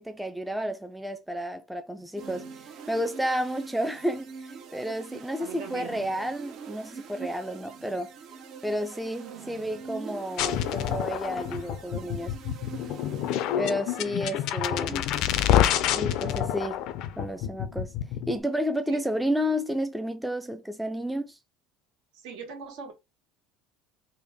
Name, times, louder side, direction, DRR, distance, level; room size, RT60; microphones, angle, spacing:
voice 1, 0.0-2.4 2.9-8.1 8.6-12.3 13.6-15.1 15.9-16.8 17.2-17.9 18.3-21.4, equal, ahead, 0.4 m, -31 dB
sound 1, 2.1-13.9, right 5 dB, 50° right, 0.7 m, -43 dB
voice 2, 5.4-5.9 18.9-19.0 22.1-22.9, right 5 dB, 75° right, 1.5 m, -40 dB
sound 2, 10.4-18.4, left 11 dB, 60° left, 0.4 m, -27 dB
3.5 x 2.1 x 3.4 m
cardioid pair, 125°, 0 cm